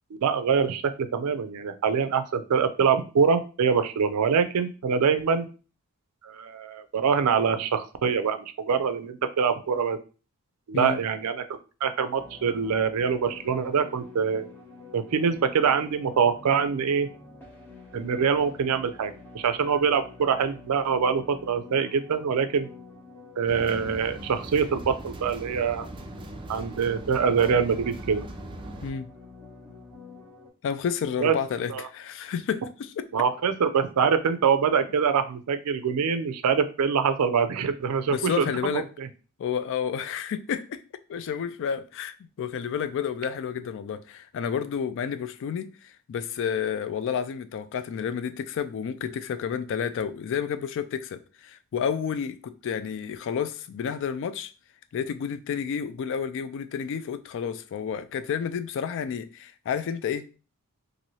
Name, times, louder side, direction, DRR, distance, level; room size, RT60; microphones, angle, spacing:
voice 1, 0.2-5.5 6.2-10.0 10.7-11.4 11.8-14.5 14.9-17.1 17.9-22.7 23.4-25.9 26.5-28.3 31.2-31.3 31.7-31.9 33.1-38.5 38.7-39.1, right 6 dB, 90° right, 0.4 m, -24 dB
sound 1, 12.1-30.5, left 3 dB, 10° left, 0.8 m, -48 dB
sound 2, 23.5-28.9, right 1 dB, 20° right, 0.4 m, -40 dB
voice 2, 30.6-33.1 38.1-38.9 39.4-40.8 41.1-54.5 54.9-60.3, left 7 dB, 55° left, 0.3 m, -30 dB
3.0 x 2.6 x 2.7 m
head